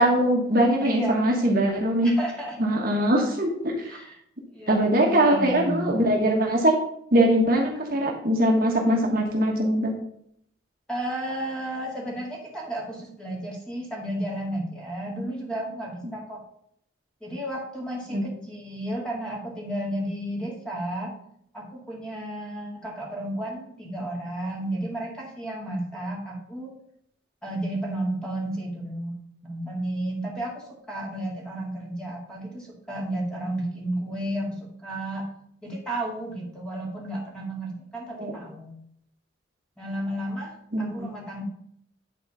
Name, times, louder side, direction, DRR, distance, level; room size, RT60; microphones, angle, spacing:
voice 1, 0.0-2.1 2.6-4.0 4.7-6.7 7.1-9.9 18.1-18.2 38.2-38.3 40.7-41.1, right 1 dB, 45° right, 0 dB, 1.4 m, -22 dB
voice 2, 0.8-1.2 2.0-3.0 3.8-4.2 4.5-5.9 10.9-16.4 17.2-21.1 21.5-26.7 27.4-29.1 29.4-35.3 35.6-38.8 39.8-41.4, right 1 dB, 5° left, -3 dB, 2.0 m, -33 dB
10.0 x 4.0 x 5.4 m, 0.70 s
head